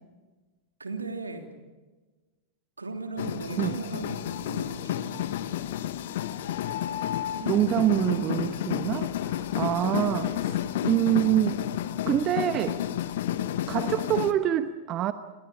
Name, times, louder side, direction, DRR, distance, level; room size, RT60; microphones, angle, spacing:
voice 1, 0.8-1.4 2.8-5.3, right 3 dB, 80° right, 3.1 m, -37 dB
sound 1, 3.2-14.3, left 11 dB, 55° left, 1.3 m, -31 dB
voice 2, 7.4-11.7 12.1-12.8 13.7-15.1, right 12 dB, 35° right, 1.0 m, -26 dB
29.5 x 24.5 x 5.2 m
figure-of-eight pair, 90°, 0 cm